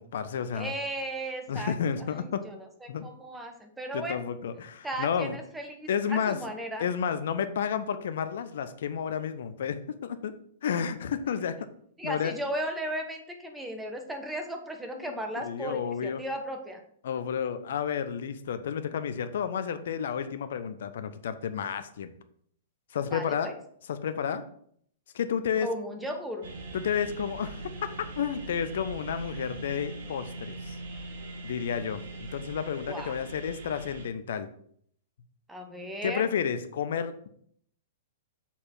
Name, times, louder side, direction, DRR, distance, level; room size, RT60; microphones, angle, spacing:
voice 1, 0.0-0.7 1.5-2.4 2.9-3.1 3.9-5.4 5.9-6.4 6.8-10.3 10.6-11.6 12.0-12.3 14.9-16.2 17.0-22.1 22.9-23.5 23.9-24.4 25.1-25.7 26.7-27.9 28.2-30.8 31.4-34.5 36.0-37.3, left 7 dB, 65° left, 11 dB, 0.6 m, -31 dB
voice 2, 0.5-1.7 2.1-4.2 4.8-6.9 12.0-16.8 23.1-23.6 25.6-26.5 32.9-33.1 35.5-36.3, right 1 dB, 5° right, 4 dB, 1.1 m, -36 dB
sound 1, 26.4-34.1, right 2 dB, 60° right, 1.4 m, -41 dB
7.2 x 4.2 x 4.4 m, 0.65 s
figure-of-eight pair, 110°, 0 cm